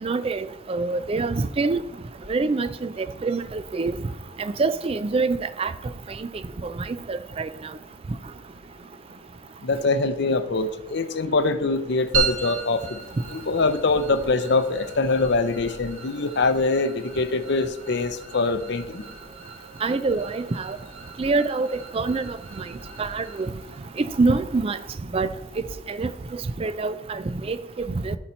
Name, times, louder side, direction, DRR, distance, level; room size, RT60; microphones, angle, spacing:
voice 1, 0.0-1.8 2.3-4.0 4.4-5.7 6.2-6.3 6.6-7.5 19.8-20.8 21.2-22.6 23.0-23.5 24.0-24.8 25.1-25.3 25.9-28.2, right 3 dB, 25° right, 0.3 m, -26 dB
voice 2, 9.6-13.0 13.3-19.0, left 3 dB, 55° left, 0.6 m, -23 dB
sound 1, 12.1-26.8, right 6 dB, 80° right, 1.8 m, -37 dB
12.5 x 4.2 x 4.4 m
head